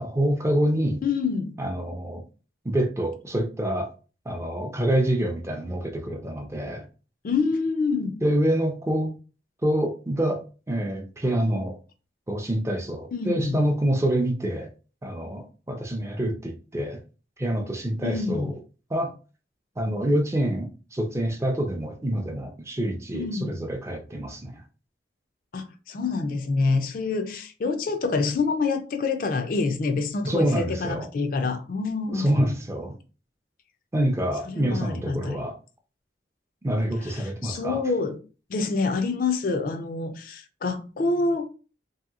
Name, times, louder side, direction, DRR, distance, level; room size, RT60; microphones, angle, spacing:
voice 1, 0.0-1.0 1.6-2.2 2.6-3.9 4.3-6.9 8.2-9.1 9.6-11.8 12.3-14.7 15.0-17.0 17.4-18.5 18.9-19.1 19.8-24.6 30.2-31.1 32.1-33.0 33.9-35.6 36.6-37.8, right 1 dB, 15° right, 0.4 m, -26 dB
voice 2, 1.0-1.5 7.2-8.2 13.1-13.6 18.0-18.5 23.1-23.6 25.5-32.5 34.5-35.4 37.1-38.2 38.5-41.4, left 4 dB, 50° left, 0.4 m, -27 dB
3.0 x 2.8 x 2.4 m
head